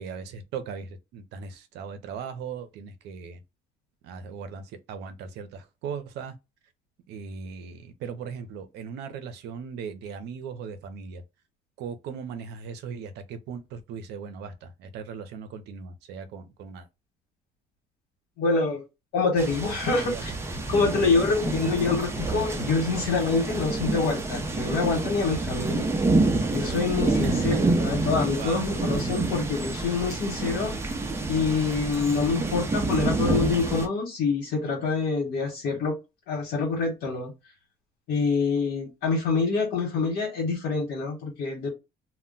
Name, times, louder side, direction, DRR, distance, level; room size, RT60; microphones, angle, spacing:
voice 1, 0.0-3.4 4.0-6.4 7.1-11.2 11.8-16.9 19.8-20.4 27.2-27.7 28.4-28.6, right 6 dB, 80° right, 0.6 m, -38 dB
voice 2, 18.4-18.8 19.1-20.3 20.7-25.9 26.5-30.7 31.3-36.0 36.3-37.3 38.1-41.7, left 4 dB, 80° left, 1.0 m, -26 dB
sound 1, 19.4-33.9, right 2 dB, 15° right, 0.5 m, -28 dB
2.1 x 2.1 x 3.7 m
cardioid pair, 110°, 17 cm